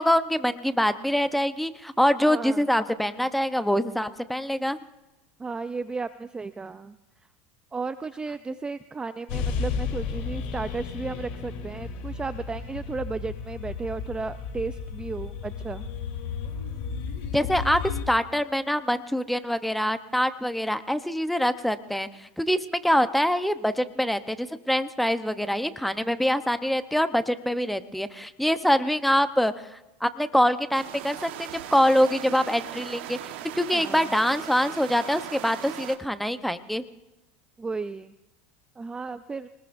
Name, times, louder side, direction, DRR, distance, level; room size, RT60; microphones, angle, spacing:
voice 1, 0.0-4.8 17.3-33.2 33.5-36.8, equal, ahead, 11 dB, 0.9 m, -24 dB
voice 2, 2.2-2.6 5.4-7.0 7.7-15.8 33.7-34.1 37.6-38.1 38.8-39.5, right 4 dB, 15° right, 12 dB, 0.5 m, -34 dB
sound 1, 9.3-18.0, left 5 dB, 70° left, 3.5 m, -33 dB
sound 2, 30.7-36.0, right 12 dB, 75° right, 1.4 m, -38 dB
24.5 x 20.0 x 2.7 m, 1.0 s
supercardioid pair, 120°, 6 cm